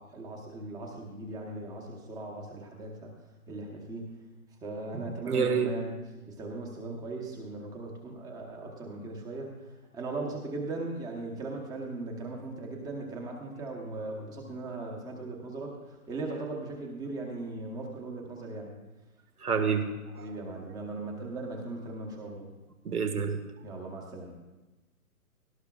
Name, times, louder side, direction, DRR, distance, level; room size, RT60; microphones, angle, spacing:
voice 1, 0.0-3.1 3.5-4.2 4.6-6.0 6.3-9.7 9.9-15.8 16.1-18.7 20.2-22.5 23.6-24.3, right 2 dB, 10° right, 1 dB, 1.0 m, -38 dB
voice 2, 4.9-5.7 19.4-19.8 20.1-20.3 22.8-23.4, right 6 dB, 85° right, 5 dB, 1.7 m, -28 dB
18.0 x 12.0 x 2.4 m, 1.1 s
hypercardioid pair, 150°, 44 cm